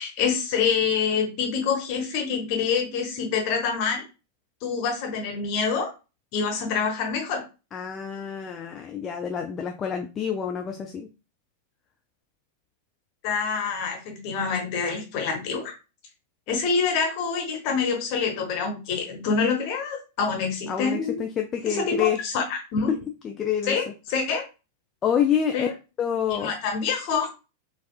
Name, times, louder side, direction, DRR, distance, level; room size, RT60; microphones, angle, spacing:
voice 1, 0.0-4.0 4.6-5.9 6.3-7.4 13.2-15.7 16.5-21.2 21.6-23.0 23.6-24.4 25.5-25.7 26.3-27.3, left 5 dB, 45° left, 2 dB, 1.1 m, -26 dB
voice 2, 7.7-11.1 20.7-22.2 23.2-23.8 25.0-25.7 26.0-26.5, left 8 dB, 25° left, 3 dB, 0.4 m, -27 dB
4.2 x 2.4 x 2.4 m, 0.30 s
figure-of-eight pair, 90°, 0 cm